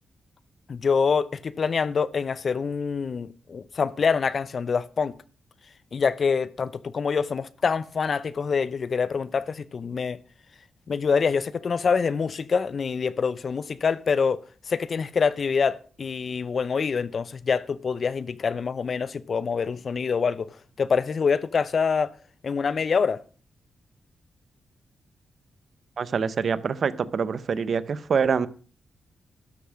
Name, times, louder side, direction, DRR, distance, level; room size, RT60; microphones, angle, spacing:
voice 1, 0.7-5.1 5.9-10.2 10.9-20.5 20.8-22.1 22.4-23.2, left 5 dB, 50° left, 0.6 m, -25 dB
voice 2, 26.0-28.5, right 6 dB, 60° right, 0.7 m, -25 dB
12.5 x 7.0 x 6.2 m
cardioid pair, 100°, 0 cm